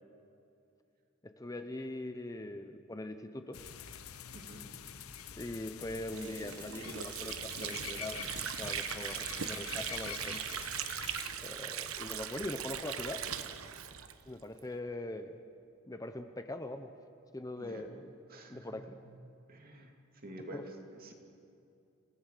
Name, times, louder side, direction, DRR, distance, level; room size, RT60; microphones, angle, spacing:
voice 1, 1.2-3.6 5.4-10.6 11.4-13.2 14.3-15.4 15.9-16.9 17.3-18.1 18.5-19.0 20.5-20.6, left 1 dB, 15° left, 8 dB, 0.7 m, -42 dB
sound 1, 3.5-11.3, left 8 dB, 85° left, 1.0 m, -46 dB
voice 2, 4.3-4.7 17.6-17.8 18.3-18.8 19.5-19.9 20.2-20.6 21.0-21.1, right 1 dB, 45° right, 3 dB, 2.6 m, -48 dB
Water / Sink (filling or washing), 6.1-14.7, right 9 dB, 75° right, 1.1 m, -39 dB
27.5 x 17.5 x 6.7 m, 2.6 s
head